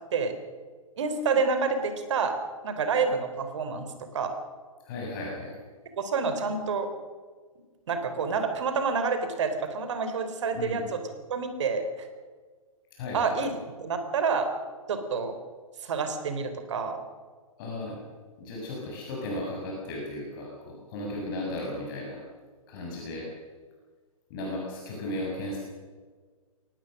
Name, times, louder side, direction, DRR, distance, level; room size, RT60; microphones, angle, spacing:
voice 1, 1.0-2.4 2.6-4.3 6.0-6.9 7.9-11.0 11.3-12.1 13.1-13.5 13.8-14.5 14.9-15.4 15.8-17.0, right 5 dB, 55° right, 8 dB, 3.7 m, -28 dB
voice 2, 4.8-5.6 10.5-10.8 12.9-13.4 17.6-18.0 18.4-22.2 22.7-23.3 24.3-25.6, left 1 dB, 40° left, -2 dB, 6.9 m, -35 dB
24.0 x 18.5 x 6.5 m, 1.5 s
figure-of-eight pair, 115°, 18 cm